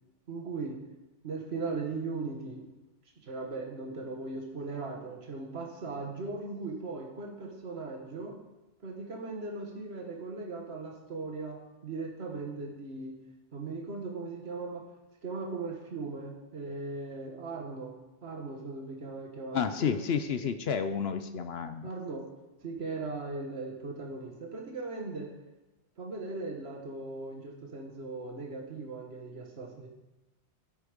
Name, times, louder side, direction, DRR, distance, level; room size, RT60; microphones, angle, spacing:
voice 1, 0.3-0.8 1.2-2.6 3.2-8.4 8.8-13.2 13.5-14.9 15.2-18.0 18.2-20.0 21.8-22.3 22.6-25.3 26.0-29.9, right 3 dB, 65° right, 0 dB, 1.8 m, -38 dB
voice 2, 19.5-21.9, left 7 dB, 65° left, 9 dB, 0.9 m, -31 dB
13.5 x 8.3 x 5.2 m, 1.0 s
omnidirectional pair, 1.1 m